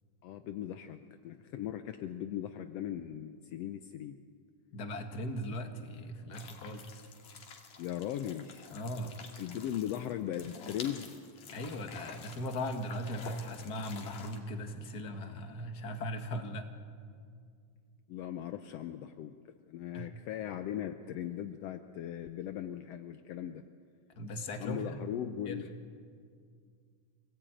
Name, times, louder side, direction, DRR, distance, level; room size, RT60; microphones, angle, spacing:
voice 1, 0.2-4.2 7.8-8.7 9.4-11.2 18.1-19.4 19.7-23.6 24.6-25.7, left 11 dB, 80° left, 8 dB, 1.4 m, -38 dB
voice 2, 4.7-7.1 8.7-9.2 11.5-16.7 19.9-20.1 24.1-25.0 25.4-25.6, equal, 40° left, 5 dB, 1.7 m, -39 dB
sound 1, 6.3-14.4, left 5 dB, 60° left, 3.3 m, -49 dB
26.0 x 18.0 x 9.0 m, 2.2 s
omnidirectional pair, 3.7 m